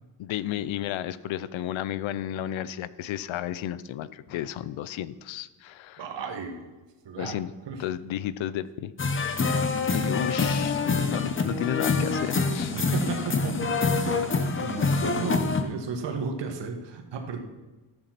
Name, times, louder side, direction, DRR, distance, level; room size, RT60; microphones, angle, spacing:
voice 1, 0.2-6.0 7.2-7.5 7.8-8.9 9.9-12.8, left 11 dB, 90° left, 16 dB, 0.7 m, -32 dB
voice 2, 6.0-6.6 7.0-7.4 7.7-7.8 12.7-17.4, right 4 dB, 70° right, 5 dB, 1.6 m, -34 dB
sound 1, 9.0-15.6, left 4 dB, 25° left, 0.9 m, -26 dB
14.5 x 7.0 x 5.9 m, 1.2 s
cardioid pair, 150°, 45 cm